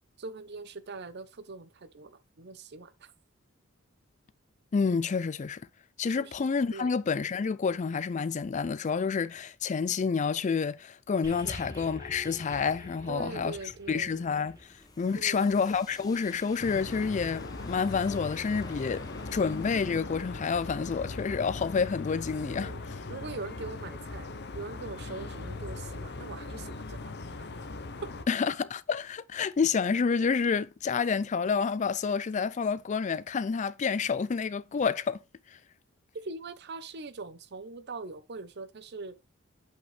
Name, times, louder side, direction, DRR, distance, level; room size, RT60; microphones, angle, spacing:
voice 1, 0.2-2.9 6.1-6.3 6.7-6.9 11.4-11.6 13.1-14.2 15.2-15.5 22.4-22.8 23.1-24.3 24.5-27.1 28.0-28.1 36.2-39.2, right 3 dB, 55° right, 0.7 m, -41 dB
voice 2, 4.7-5.6 6.0-14.6 15.0-19.0 19.3-22.9 28.3-35.2, left 5 dB, 35° left, 0.4 m, -29 dB
sound 1, 11.2-15.8 16.6-16.7, equal, 15° right, 2.3 m, -47 dB
sound 2, 13.7-22.3, left 2 dB, 20° left, 0.8 m, -51 dB
sound 3, 16.6-28.2, left 3 dB, 55° left, 0.8 m, -39 dB
8.2 x 5.2 x 3.3 m
head